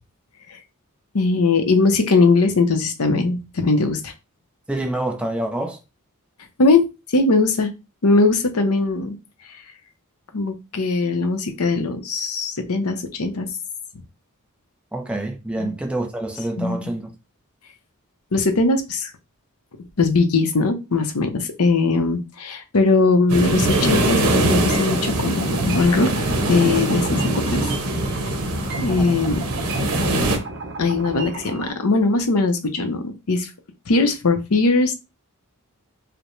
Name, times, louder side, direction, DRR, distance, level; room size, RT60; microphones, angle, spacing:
voice 1, 1.1-4.1 6.6-6.8 7.1-7.7 8.0-9.2 10.3-13.5 15.6-15.7 16.6-16.8 18.3-19.1 20.0-26.1 26.5-27.2 27.5-27.6 28.8-29.4 30.8-33.5 33.9-34.9, left 3 dB, 80° left, 0.8 m, -20 dB
voice 2, 4.7-5.8 14.9-17.1 29.0-29.1, right 1 dB, 5° right, 0.5 m, -27 dB
sound 1, 23.3-30.4, right 1 dB, 75° right, 1.0 m, -22 dB
sound 2, 23.7-31.7, right 3 dB, 55° right, 0.8 m, -34 dB
4.9 x 2.1 x 3.1 m
head